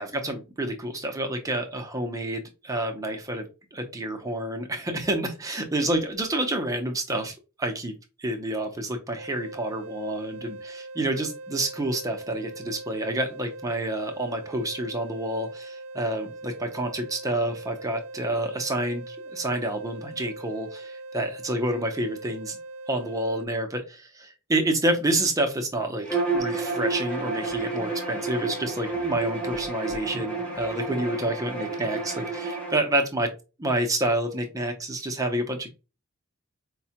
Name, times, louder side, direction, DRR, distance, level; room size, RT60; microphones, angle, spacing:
voice 1, 0.0-7.9 8.2-22.6 22.9-23.8 24.1-26.1 26.3-33.3 33.6-35.7, right 1 dB, 15° right, 4 dB, 0.5 m, -28 dB
sound 1, 9.2-23.5, right 2 dB, 80° right, 0.4 m, -41 dB
Bowed string instrument, 26.0-32.8, right 3 dB, 5° left, 0.8 m, -30 dB
4.5 x 2.1 x 2.8 m, 0.30 s
head